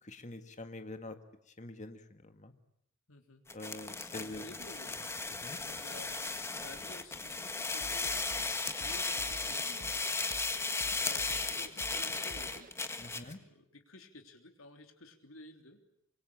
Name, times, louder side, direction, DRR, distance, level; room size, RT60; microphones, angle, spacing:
voice 1, 0.0-1.2 1.6-2.5 3.5-4.5 5.4-5.6 13.0-13.4, left 2 dB, 35° left, 7 dB, 1.8 m, -45 dB
voice 2, 3.1-3.4 3.7-5.1 5.6-12.7 13.1-15.8, left 2 dB, 85° left, 5 dB, 3.5 m, -54 dB
sound 1, 3.5-13.3, left 3 dB, 15° left, 1.6 m, -36 dB
sound 2, 7.8-12.7, right 1 dB, 45° right, 1.5 m, -50 dB
25.5 x 24.0 x 8.7 m, 0.77 s
head